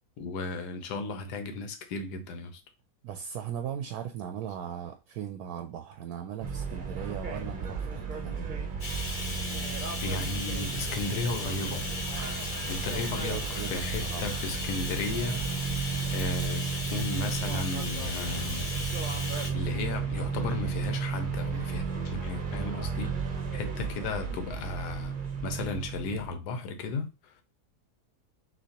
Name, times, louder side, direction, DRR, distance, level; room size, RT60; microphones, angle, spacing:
voice 1, 0.2-2.6 10.0-11.9 12.7-15.4 16.1-18.6 19.5-23.1 23.5-25.1 25.4-27.1, left 3 dB, 85° left, 1.4 m, -34 dB
voice 2, 3.0-8.5 13.2-13.8 14.1-14.2, right 9 dB, 75° right, 1.0 m, -38 dB
sound 1, 6.4-26.3, right 5 dB, 40° right, 0.7 m, -34 dB
Bathtub (filling or washing), 8.8-19.5, left 2 dB, 35° left, 1.0 m, -37 dB
6.2 x 2.7 x 2.8 m
omnidirectional pair, 1.7 m